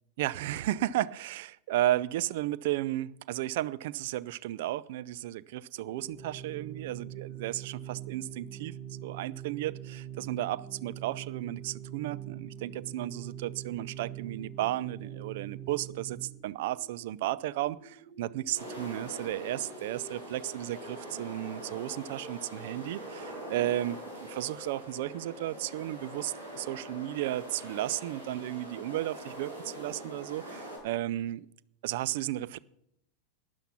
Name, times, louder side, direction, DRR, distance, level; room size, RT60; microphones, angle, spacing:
voice 1, 0.2-8.7 9.0-31.5 31.8-32.6, right 14 dB, 50° right, 0.4 m, -34 dB
Organ, 5.8-16.5, right 10 dB, 30° right, 2.3 m, -43 dB
sound 1, 11.7-30.4, left 2 dB, 15° left, 2.0 m, -53 dB
sound 2, 18.5-30.8, right 1 dB, 75° right, 6.5 m, -44 dB
12.0 x 10.5 x 6.0 m
figure-of-eight pair, 90°, 0 cm